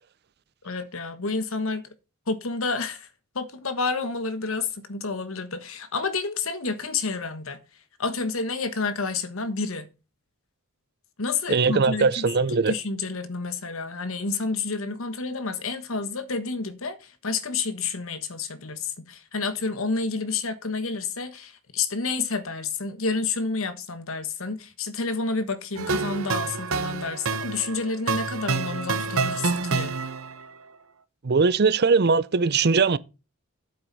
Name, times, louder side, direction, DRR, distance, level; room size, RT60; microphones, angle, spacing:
voice 1, 0.6-1.9 2.3-3.1 3.3-7.6 8.0-9.9 11.2-30.1, left 4 dB, 65° left, 1.3 m, -29 dB
voice 2, 11.5-12.7 31.2-33.0, right 4 dB, 50° right, 0.6 m, -20 dB
sound 1, 25.8-30.5, right 4 dB, 70° right, 0.9 m, -28 dB
9.3 x 7.9 x 4.1 m
head